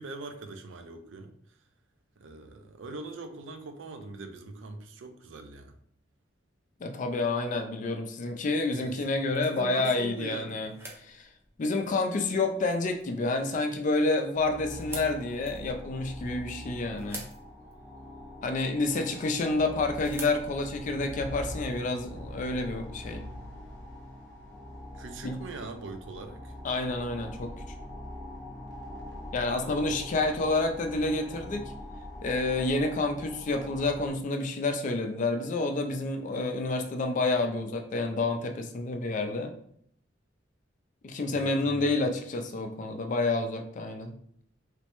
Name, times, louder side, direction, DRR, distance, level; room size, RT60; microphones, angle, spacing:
voice 1, 0.0-1.3 2.2-5.8 8.7-9.0 9.4-10.6 18.9-19.1 24.9-26.5 29.5-30.1 41.3-41.9, right 3 dB, 75° right, 7 dB, 0.4 m, -42 dB
voice 2, 6.8-10.7 11.0-11.3 11.6-17.2 18.4-23.2 25.2-25.4 26.6-27.5 29.3-31.7 32.2-39.5 41.0-44.1, left 2 dB, 40° left, 5 dB, 0.4 m, -29 dB
sound 1, 8.8-21.6, right 1 dB, 15° right, 0.5 m, -50 dB
sound 2, 14.3-34.1, left 1 dB, 60° left, 0.7 m, -43 dB
3.3 x 2.1 x 2.9 m, 0.66 s
head